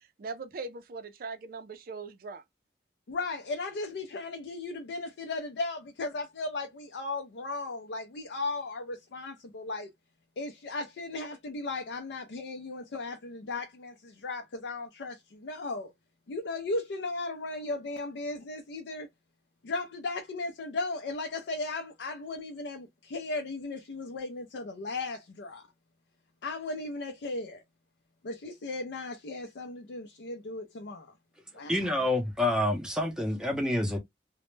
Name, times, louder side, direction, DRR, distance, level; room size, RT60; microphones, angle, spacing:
voice 1, 0.2-2.4, right 4 dB, 55° right, 0.4 m, -40 dB
voice 2, 3.1-9.9 10.4-15.9 16.3-19.1 19.6-25.7 26.4-27.6 28.2-31.1 31.5-31.7, left 3 dB, 80° left, 0.4 m, -36 dB
voice 3, 31.7-34.0, left 1 dB, 5° right, 0.6 m, -28 dB
2.1 x 2.0 x 3.1 m
head